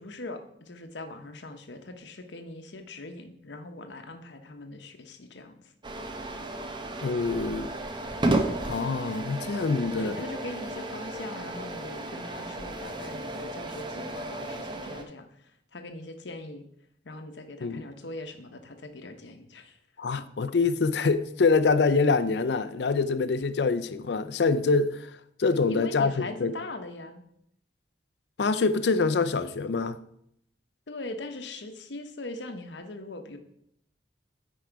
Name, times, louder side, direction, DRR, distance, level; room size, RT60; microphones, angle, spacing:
voice 1, 0.0-5.7 9.8-15.4 15.7-16.6 17.0-19.8 25.7-27.3 30.9-33.4, left 2 dB, 90° left, 0.9 m, -41 dB
sound 1, 5.8-15.0, right 2 dB, 25° right, 0.8 m, -33 dB
voice 2, 7.0-7.7 8.6-10.2 17.6-17.9 20.0-25.1 25.4-26.5 28.4-30.0, left 4 dB, 70° left, 0.5 m, -25 dB
8.8 x 4.8 x 4.6 m
head